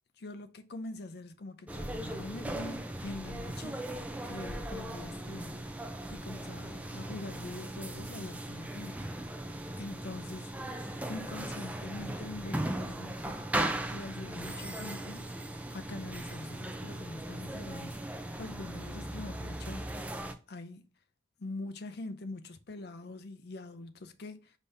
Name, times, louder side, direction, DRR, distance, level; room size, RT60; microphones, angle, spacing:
voice 1, 0.2-4.0 4.2-5.6 6.1-10.5 11.1-13.4 13.9-15.4 15.7-18.0 18.4-19.9 20.5-20.9 21.4-24.5, left 2 dB, 55° left, 0.5 m, -44 dB
sound 1, 1.7-20.3, right 1 dB, 5° right, 0.3 m, -38 dB
5.3 x 2.7 x 3.3 m
head